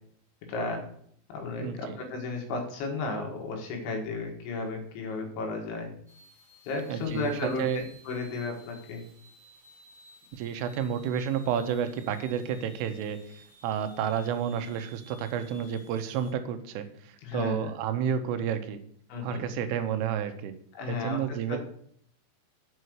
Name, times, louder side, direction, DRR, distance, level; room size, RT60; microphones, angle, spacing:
voice 1, 0.5-0.8 1.3-5.9 6.7-9.0 17.2-17.7 19.1-19.4 20.7-21.6, left 3 dB, 75° left, 2 dB, 4.0 m, -34 dB
voice 2, 1.6-2.0 6.9-7.8 10.3-18.8 19.2-20.6 20.9-21.6, right 8 dB, 90° right, 9 dB, 3.4 m, -31 dB
sound 1, 6.1-16.3, right 1 dB, ahead, 3.3 m, -56 dB
8.1 x 5.6 x 7.9 m, 0.65 s
omnidirectional pair, 5.5 m